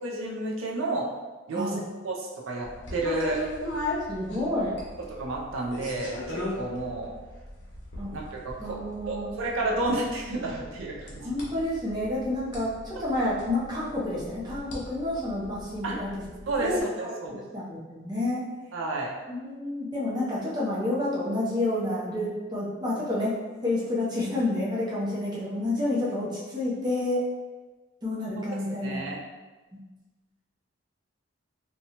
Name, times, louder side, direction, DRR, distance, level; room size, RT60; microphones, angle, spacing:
voice 1, 0.0-1.1 1.5-1.7 2.0-3.4 5.2-7.1 8.1-8.8 9.1-11.2 15.8-15.9 16.5-16.7 17.0-17.5 18.7-19.1 28.8-29.2, right 2 dB, 85° right, -2 dB, 0.5 m, -31 dB
sound 1, 2.6-16.8, left 1 dB, 65° left, 0.7 m, -38 dB
voice 2, 4.1-4.8 8.0-8.1 8.6-9.3 11.2-16.1 16.3-17.1 17.5-18.4 19.3-27.3 28.0-29.0, left 1 dB, 20° right, -7 dB, 0.6 m, -29 dB
2.7 x 2.2 x 2.8 m, 1.2 s
head